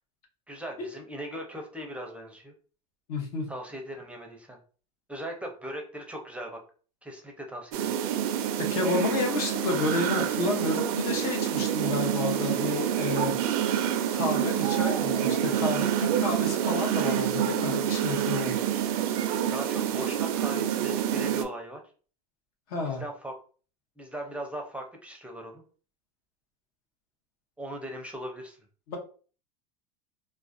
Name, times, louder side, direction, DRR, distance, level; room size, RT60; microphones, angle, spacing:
voice 1, 0.5-2.5 3.5-4.6 5.1-6.6 7.0-7.9 19.5-21.8 22.8-23.3 24.0-25.6 27.6-28.6, right 1 dB, 5° right, 2 dB, 0.5 m, -39 dB
voice 2, 3.1-3.5 8.7-13.3 14.1-18.6 22.7-23.0 28.9-29.0, left 3 dB, 75° left, 2 dB, 0.8 m, -30 dB
sound 1, 7.7-21.4, right 10 dB, 70° right, 0.4 m, -27 dB
2.4 x 2.1 x 2.4 m, 0.40 s
supercardioid pair, 110°, 19 cm